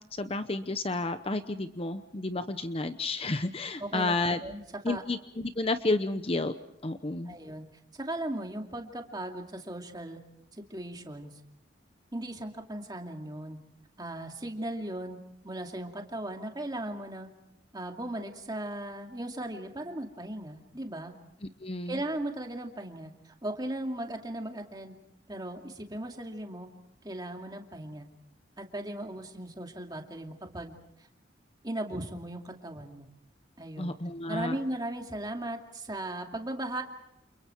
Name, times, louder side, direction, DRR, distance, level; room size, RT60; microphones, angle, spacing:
voice 1, 0.1-4.4 4.8-6.5 6.8-7.3 21.6-22.0 33.8-34.6, left 2 dB, 30° left, 10 dB, 0.8 m, -31 dB
voice 2, 3.8-5.0 7.3-7.7 7.9-10.2 10.6-11.3 12.1-13.6 14.0-15.2 15.4-17.3 17.7-21.1 21.9-24.9 25.3-26.7 27.0-28.1 28.6-30.8 31.6-33.1 33.6-33.9 34.3-36.8, right 1 dB, 20° right, 3 dB, 2.5 m, -37 dB
29.5 x 29.5 x 4.6 m, 0.79 s
head